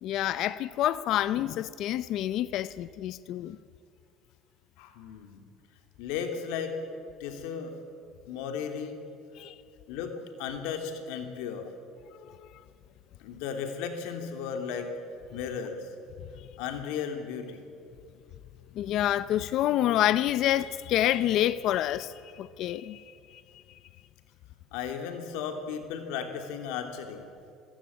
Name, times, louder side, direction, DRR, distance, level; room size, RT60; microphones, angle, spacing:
voice 1, 0.0-3.6 9.4-9.5 12.2-12.5 18.7-23.4, left 12 dB, 55° left, 0.6 m, -28 dB
voice 2, 4.8-5.4 6.0-6.8 7.2-7.8 8.3-9.0 9.9-11.7 13.2-14.9 15.3-15.9 16.6-17.6 24.7-27.3, left 7 dB, 80° left, 2.9 m, -35 dB
25.0 x 16.0 x 8.6 m
cardioid pair, 125°, 0 cm